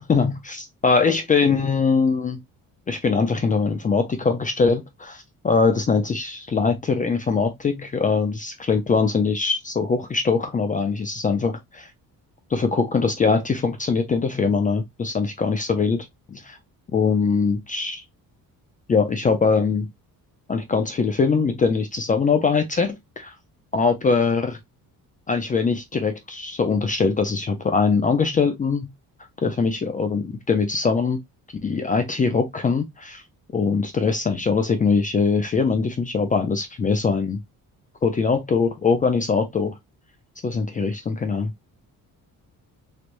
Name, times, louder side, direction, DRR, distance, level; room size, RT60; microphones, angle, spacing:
voice 1, 0.1-2.4 2.9-11.9 12.5-16.6 16.9-18.0 18.9-19.9 20.5-23.3 23.7-24.6 25.3-28.9 29.4-31.2 31.6-33.2 33.5-37.4 38.0-39.8 40.4-41.5, left 4 dB, 25° left, 0.4 m, -22 dB
3.2 x 3.1 x 2.4 m
cardioid pair, 155°, 35 cm